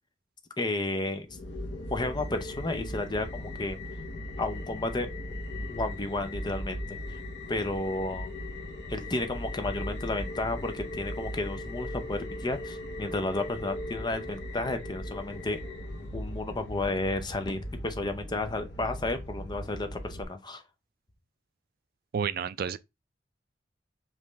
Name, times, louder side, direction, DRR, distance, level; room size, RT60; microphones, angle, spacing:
voice 1, 0.6-1.3 1.9-3.8 4.4-5.1 5.7-7.2 7.5-8.3 8.9-15.6 16.1-20.6, left 2 dB, 25° left, 0.6 m, -32 dB
sound 1, 1.3-20.2, left 1 dB, 65° left, 1.0 m, -38 dB
voice 2, 22.1-22.8, right 7 dB, 55° right, 0.4 m, -30 dB
5.3 x 2.6 x 3.2 m
head